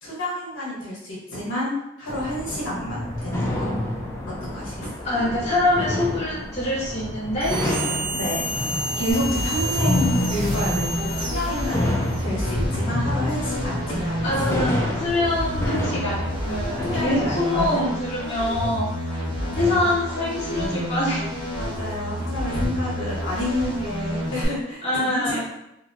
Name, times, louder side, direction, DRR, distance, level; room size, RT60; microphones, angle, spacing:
voice 1, 0.0-3.7 4.3-4.9 8.1-8.5 9.0-14.3 16.8-17.9 19.0-19.9 21.5-25.4, left 1 dB, 70° left, -6 dB, 1.0 m, -29 dB
sound 1, 2.1-17.4, left 1 dB, 15° left, 0.4 m, -28 dB
voice 2, 5.0-7.6 14.2-18.9 19.5-21.3 24.8-25.4, left 1 dB, 35° left, -8 dB, 1.0 m, -25 dB
sound 2, 7.4-12.3, right 1 dB, 80° right, 1.0 m, -30 dB
sound 3, 9.1-24.5, equal, 20° right, 0.8 m, -29 dB
2.9 x 2.8 x 2.5 m, 0.83 s
head